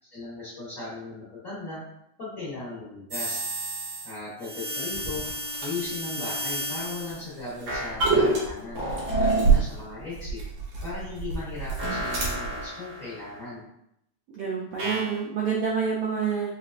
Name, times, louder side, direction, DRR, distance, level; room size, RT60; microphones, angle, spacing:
voice 1, 0.0-1.8 2.2-3.4 4.0-5.2 5.6-8.8 9.2-10.4 10.8-13.7, left 3 dB, 75° left, -9 dB, 0.7 m, -37 dB
sound 1, 3.1-4.2 4.4-7.2 7.7-8.4 8.7-9.5 11.8-13.3 14.8-15.1, right 1 dB, 50° right, 1.6 m, -29 dB
sound 2, 5.0-12.7, right 5 dB, 65° right, 1.7 m, -30 dB
voice 2, 14.3-16.5, right 6 dB, 85° right, -6 dB, 1.4 m, -27 dB
5.6 x 2.5 x 2.4 m, 0.79 s
omnidirectional pair, 3.8 m